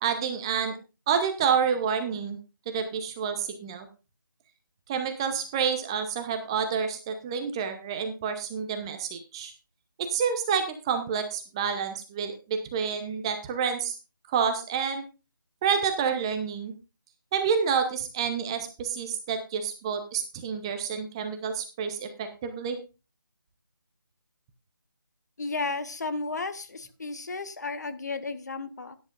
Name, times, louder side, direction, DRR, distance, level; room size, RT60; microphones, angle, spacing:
voice 1, 0.0-0.7 1.1-2.4 2.7-3.9 4.9-9.5 10.1-14.0 14.3-15.0 15.6-16.7 17.3-22.8, right 6 dB, 15° right, 8 dB, 0.7 m, -28 dB
voice 2, 25.4-28.9, left 3 dB, 50° left, 9 dB, 1.2 m, -33 dB
16.0 x 10.0 x 2.5 m, 0.31 s
figure-of-eight pair, 155°, 12 cm